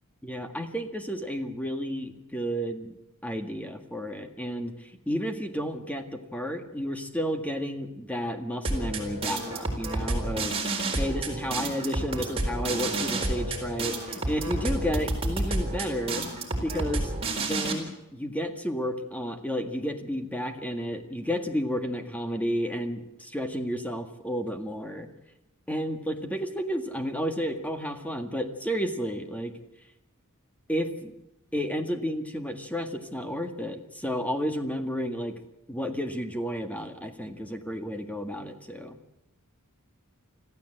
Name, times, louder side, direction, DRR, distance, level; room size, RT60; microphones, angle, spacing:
voice 1, 0.2-2.9 3.2-10.6 11.0-16.2 16.6-17.1 17.4-25.1 25.7-29.5 30.7-31.1 31.5-35.4 35.7-39.0, equal, 5° left, 5 dB, 1.7 m, -32 dB
sound 1, 8.6-17.7, right 2 dB, 25° right, 4.0 m, -30 dB
25.0 x 15.0 x 7.9 m, 0.93 s
head